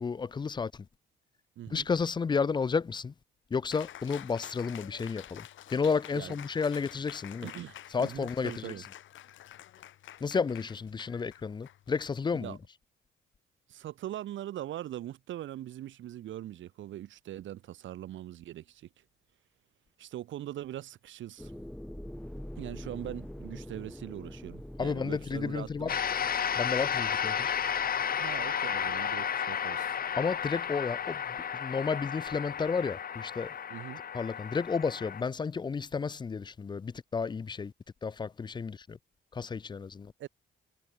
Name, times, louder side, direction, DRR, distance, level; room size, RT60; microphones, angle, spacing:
voice 1, 0.0-0.9 1.7-3.1 3.5-7.5 7.9-8.7 10.2-12.6 24.8-26.0 26.6-27.6 30.2-31.2 31.5-33.5 34.1-37.7 38.0-39.0 39.3-40.1, left 5 dB, 25° left, 0.4 m, -32 dB
Cheering, 3.7-12.7, left 12 dB, 75° left, 5.2 m, -49 dB
voice 2, 7.4-8.8 12.4-12.6 13.7-18.9 20.0-21.5 22.6-25.9 28.2-30.0 33.7-34.0 40.2-40.3, right 13 dB, 75° right, 1.4 m, -41 dB
sound 1, 21.4-31.1, left 1 dB, 5° left, 3.2 m, -46 dB
sound 2, 25.9-35.2, left 8 dB, 50° left, 1.4 m, -33 dB
cardioid pair, 90°, 20 cm